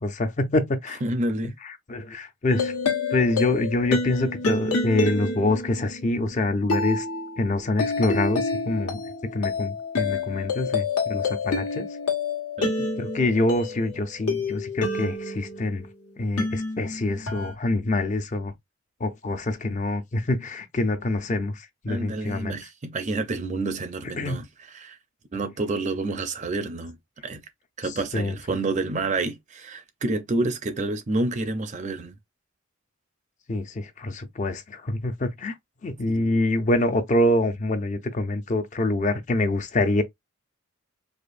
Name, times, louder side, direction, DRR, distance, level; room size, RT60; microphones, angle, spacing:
voice 1, 0.0-1.0 1.6-2.8 3.1-7.1 7.4-9.0 9.3-11.9 13.0-15.9 16.2-18.5 19.0-22.6 24.2-24.4 27.8-28.3 33.5-35.5 35.8-40.0, left 2 dB, 35° left, 0.5 m, -26 dB
voice 2, 1.0-1.5 12.6-13.0 21.9-25.0 25.3-27.0 27.2-27.4 27.8-32.1 36.1-36.4, right 2 dB, 35° right, 0.5 m, -29 dB
sound 1, 2.5-15.9 16.4-17.5, left 3 dB, 85° left, 1.4 m, -28 dB
4.9 x 2.1 x 2.5 m
head